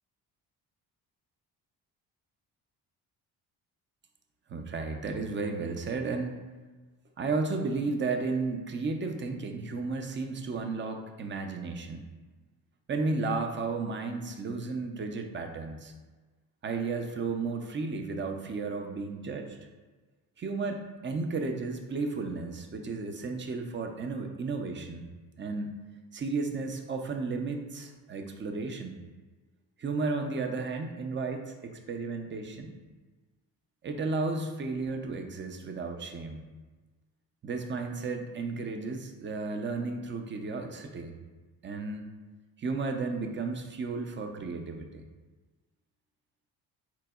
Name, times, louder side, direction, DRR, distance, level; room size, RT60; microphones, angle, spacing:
voice 1, 4.5-6.4 7.2-12.1 12.9-15.9 16.6-19.6 20.4-25.1 25.4-25.7 26.1-29.0 29.8-32.7 33.8-36.4 37.4-41.1 41.6-42.1 42.6-45.0, right 3 dB, 25° right, 5 dB, 0.5 m, -33 dB
4.0 x 3.0 x 2.3 m, 1.3 s
hypercardioid pair, 50°, 48 cm